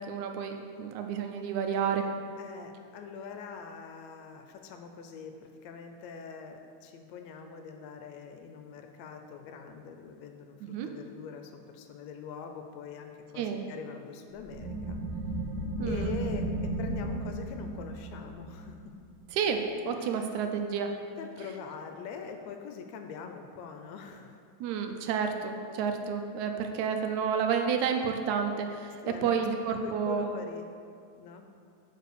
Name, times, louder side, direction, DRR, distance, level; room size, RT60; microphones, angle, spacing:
voice 1, 0.0-2.1 10.6-10.9 13.4-13.7 15.8-16.2 19.3-20.9 24.6-30.3, right 6 dB, 85° right, 5 dB, 2.0 m, -30 dB
voice 2, 2.4-15.0 15.8-18.8 19.9-20.3 21.2-24.4 29.0-29.5 29.8-30.7 31.1-31.5, left 6 dB, 80° left, 5 dB, 1.8 m, -43 dB
sound 1, 14.4-19.7, right 2 dB, 60° right, 1.5 m, -35 dB
6.7 x 4.8 x 6.6 m, 2.4 s
omnidirectional pair, 3.3 m